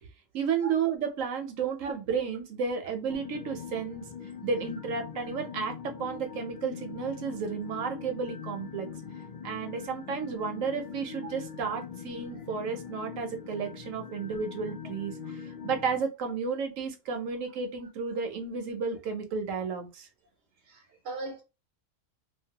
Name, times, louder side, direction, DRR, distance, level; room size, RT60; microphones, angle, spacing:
voice 1, 0.3-4.0 4.4-8.9 9.4-20.1, right 5 dB, 80° right, 1.1 m, -32 dB
sound 1, 3.1-16.0, left 7 dB, 65° left, 0.4 m, -42 dB
voice 2, 20.6-21.4, right 2 dB, 65° right, 0.8 m, -39 dB
2.9 x 2.3 x 2.8 m
omnidirectional pair, 1.3 m